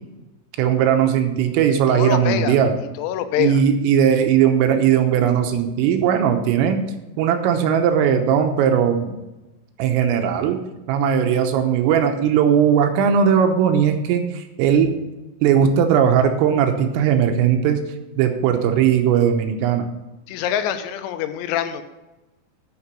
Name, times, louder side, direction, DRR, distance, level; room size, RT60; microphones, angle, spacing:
voice 1, 0.6-2.7 3.4-6.8 7.2-9.1 9.8-10.6 10.9-14.9 15.4-17.8 18.2-19.9, right 8 dB, 80° right, 6 dB, 3.5 m, -18 dB
voice 2, 1.9-2.6 3.0-3.6 20.3-21.8, left 10 dB, 85° left, 9 dB, 3.6 m, -24 dB
11.5 x 6.0 x 7.0 m, 1.0 s
omnidirectional pair, 6.0 m